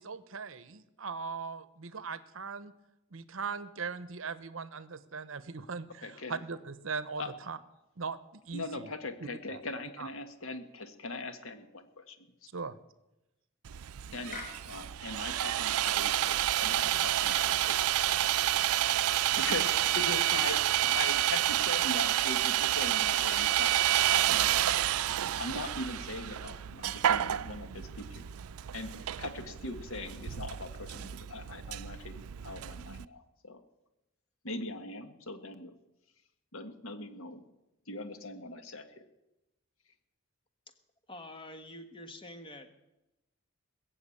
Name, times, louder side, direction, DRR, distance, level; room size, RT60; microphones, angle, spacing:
voice 1, 0.0-2.7 3.1-7.6 8.0-8.2 8.5-8.9 9.5-9.6 10.0-10.1 12.5-12.8, right 5 dB, 65° right, 15 dB, 0.8 m, -39 dB
voice 2, 6.0-6.4 7.2-7.3 8.5-12.2 14.1-18.0 18.5-23.7 24.0-24.7 25.4-28.2 28.7-28.9 29.2-32.2 32.4-33.6 34.4-35.8 36.5-37.4 37.9-38.9, left 2 dB, 70° left, 8 dB, 1.5 m, -41 dB
Sawing, 13.7-33.0, right 13 dB, 90° right, 0.4 m, -29 dB
sound 1, 14.3-14.6 17.2-17.5 20.2-20.5 23.2-23.5, left 4 dB, 40° left, 2.5 m, -43 dB
voice 3, 41.1-42.7, left 1 dB, 25° left, 8 dB, 1.3 m, -46 dB
21.0 x 7.2 x 8.6 m, 0.94 s
head